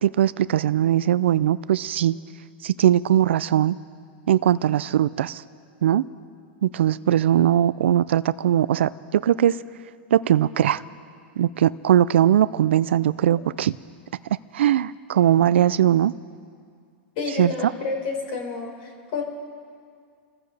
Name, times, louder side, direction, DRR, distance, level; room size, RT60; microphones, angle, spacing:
voice 1, 0.0-2.2 2.6-3.8 4.3-5.4 5.8-6.0 6.6-9.6 10.1-10.8 11.4-13.8 14.5-16.1 17.4-17.5, right 11 dB, 80° right, 17 dB, 0.4 m, -20 dB
voice 2, 17.2-19.2, left 4 dB, 55° left, 0 dB, 4.5 m, -29 dB
28.0 x 14.5 x 3.3 m, 2.2 s
hypercardioid pair, 125°, 6 cm